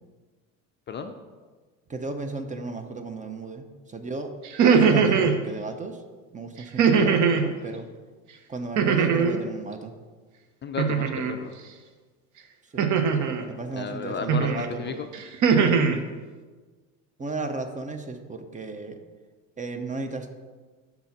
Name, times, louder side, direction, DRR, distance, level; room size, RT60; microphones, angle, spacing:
voice 1, 0.9-1.2 10.6-11.5 13.7-15.1, left 5 dB, 30° left, 6 dB, 0.4 m, -33 dB
voice 2, 1.9-4.3 4.8-6.0 6.3-7.9 8.5-9.9 12.7-12.9 13.5-15.0 17.2-19.0 19.6-20.3, right 3 dB, 20° right, 7 dB, 0.5 m, -34 dB
sound 1, 4.4-5.4 6.8-7.5 8.8-9.4 10.8-11.3 12.8-13.4 14.3-14.7 15.1-16.0, right 6 dB, 50° right, 0.8 m, -20 dB
5.7 x 3.9 x 5.7 m, 1.4 s
supercardioid pair, 95°, 37 cm